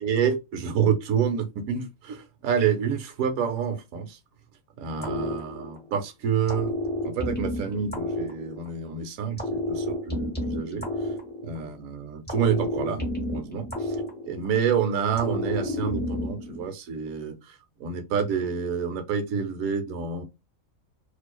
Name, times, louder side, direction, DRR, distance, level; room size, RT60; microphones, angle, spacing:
voice 1, 0.0-4.2 4.8-6.7 7.0-10.9 11.4-14.0 14.3-17.5 17.8-20.2, right 7 dB, 70° right, 1.0 m, -28 dB
sound 1, 5.0-6.0 6.5-8.9 9.4-11.8 12.3-14.7 15.2-16.7, left 1 dB, 10° left, 0.5 m, -30 dB
2.5 x 2.3 x 2.2 m
omnidirectional pair, 1.5 m